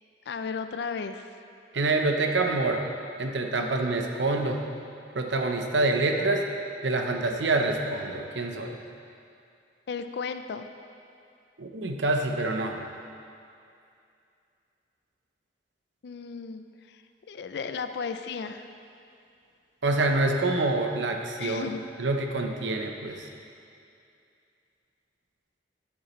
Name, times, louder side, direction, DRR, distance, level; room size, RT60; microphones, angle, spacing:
voice 1, 0.3-1.3 3.6-3.9 9.9-10.7 16.0-18.7 21.4-21.8, left 5 dB, 65° left, 8 dB, 0.4 m, -35 dB
voice 2, 1.7-2.8 3.2-4.6 5.1-6.4 6.8-8.8 11.6-12.8 19.8-21.7 22.0-23.3, right 2 dB, 80° right, 3 dB, 0.8 m, -26 dB
11.0 x 8.4 x 3.1 m, 2.5 s
head